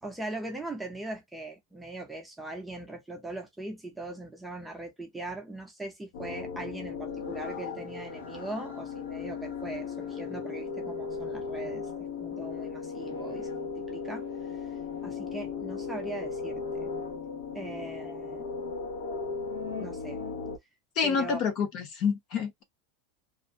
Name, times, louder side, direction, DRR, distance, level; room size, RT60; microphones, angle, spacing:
voice 1, 0.0-14.2 15.0-16.9 17.5-18.5 19.8-20.2 21.0-21.4, right 2 dB, 5° right, 0.5 m, -40 dB
sound 1, 6.1-20.6, left 5 dB, 90° left, 0.7 m, -36 dB
voice 2, 21.0-22.6, left 6 dB, 40° left, 0.6 m, -28 dB
2.5 x 2.0 x 2.6 m
supercardioid pair, 170°, 0 cm